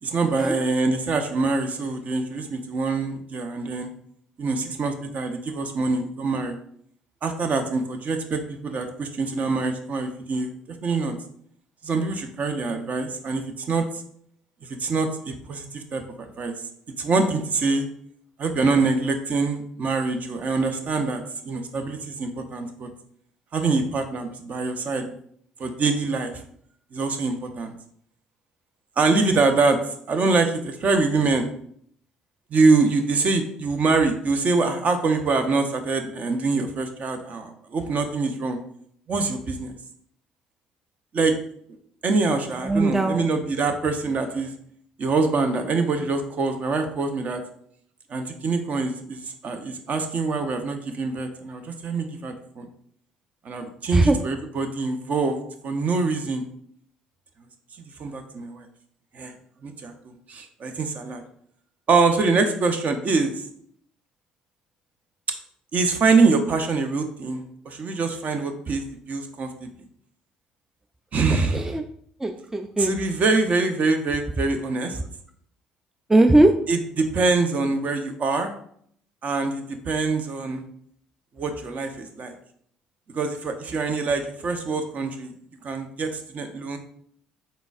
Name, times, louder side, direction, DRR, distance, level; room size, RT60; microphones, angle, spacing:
voice 1, 0.0-3.9 4.4-6.6 7.2-10.5 10.8-11.1 11.8-13.9 14.7-16.5 17.0-17.9 18.4-22.9 23.5-25.1 25.6-26.4 26.9-27.7 29.0-29.8 30.1-31.5 32.5-38.6 39.1-39.8 41.1-41.4 42.0-44.5 45.0-47.4 48.1-52.7 53.4-56.4 57.8-58.7 59.1-59.3 59.6-61.2 61.9-63.5 65.7-69.5 71.1-71.8 72.8-75.0 76.7-78.5 79.2-80.6 81.4-82.3 83.1-85.3 85.6-86.8, right 3 dB, 45° right, 6 dB, 0.6 m, -24 dB
voice 2, 42.6-43.2 53.9-54.2 71.5-71.8 72.2-72.9 76.1-76.5, right 2 dB, 10° right, 7 dB, 0.3 m, -19 dB
4.1 x 3.9 x 2.4 m, 0.65 s
hypercardioid pair, 60°, 3 cm